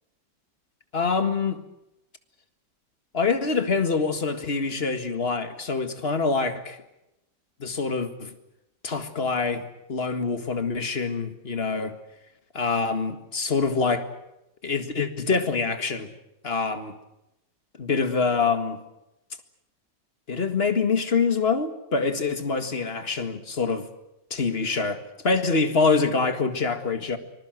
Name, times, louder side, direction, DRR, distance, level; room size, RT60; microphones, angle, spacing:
voice 1, 0.9-1.6 3.1-6.8 7.6-8.3 8.8-9.6 9.9-11.9 12.5-14.1 14.6-16.1 16.4-17.0 17.8-18.8 20.3-23.9 24.3-27.2, left 4 dB, 35° left, 1.9 m, -25 dB
25.0 x 21.0 x 7.8 m
omnidirectional pair, 2.0 m